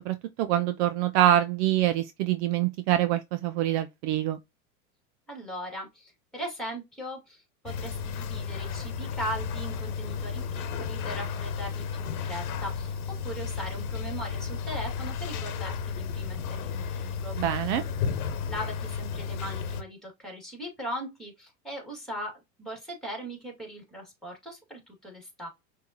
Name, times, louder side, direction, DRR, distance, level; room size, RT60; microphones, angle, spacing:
voice 1, 0.0-4.4 17.4-17.8, right 12 dB, 50° right, 0.5 m, -25 dB
voice 2, 5.3-13.0 13.2-17.6 18.4-25.5, equal, ahead, 2.4 m, -39 dB
sound 1, 7.7-19.8, left 6 dB, 80° left, 1.0 m, -33 dB
5.7 x 2.8 x 2.9 m
supercardioid pair, 125°, 44 cm